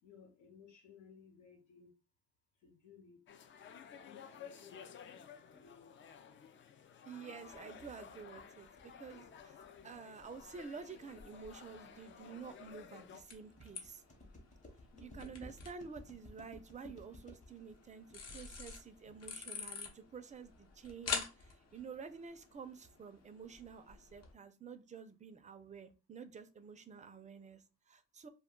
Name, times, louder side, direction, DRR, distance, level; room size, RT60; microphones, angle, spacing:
voice 1, 0.0-1.9 2.6-3.2 3.9-5.2 5.5-5.9 14.9-15.4, left 6 dB, 90° left, 1.1 m, -60 dB
sound 1, 3.3-13.2, left 7 dB, 40° left, 0.4 m, -54 dB
voice 2, 7.1-14.0 15.0-28.3, right 5 dB, 25° right, 0.4 m, -50 dB
sound 2, 7.8-19.7, left 1 dB, 25° left, 0.9 m, -58 dB
sound 3, 10.2-24.3, left 5 dB, 60° left, 0.9 m, -48 dB
2.3 x 2.2 x 3.6 m
cardioid pair, 90°, 30 cm